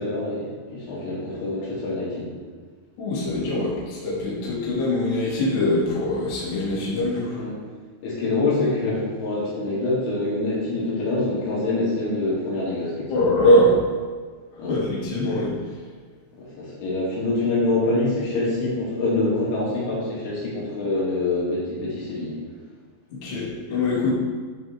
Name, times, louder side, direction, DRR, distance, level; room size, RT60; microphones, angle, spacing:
voice 1, 0.0-2.3 7.4-7.5 8.0-13.3 14.6-14.8 16.4-22.4, left 2 dB, 75° left, -7 dB, 4.6 m, -25 dB
voice 2, 3.0-7.4 13.1-13.8 14.7-15.5 23.2-24.1, left 1 dB, 45° left, -9 dB, 3.2 m, -22 dB
11.0 x 5.0 x 3.7 m, 1.5 s
omnidirectional pair, 5.6 m